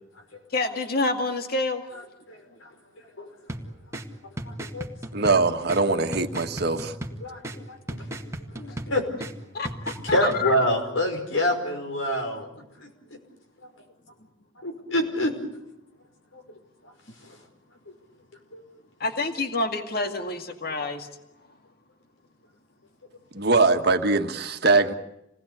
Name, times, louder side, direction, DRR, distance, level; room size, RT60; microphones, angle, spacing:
voice 1, 0.5-1.8 9.5-10.5 19.0-21.1, left 3 dB, 50° left, 6 dB, 2.1 m, -28 dB
voice 2, 2.3-2.7 3.2-3.3 4.5-4.9 7.2-8.2 8.6-9.2 10.1-12.5 12.8-12.9 14.6-15.3 16.3-16.4 18.5-18.6, left 1 dB, 90° left, 4 dB, 5.4 m, -27 dB
sound 1, 3.5-10.5, right 1 dB, 15° right, 1.9 m, -37 dB
voice 3, 5.1-6.9 23.3-24.9, right 3 dB, 55° right, 6 dB, 1.6 m, -22 dB
28.0 x 19.0 x 8.4 m, 0.85 s
head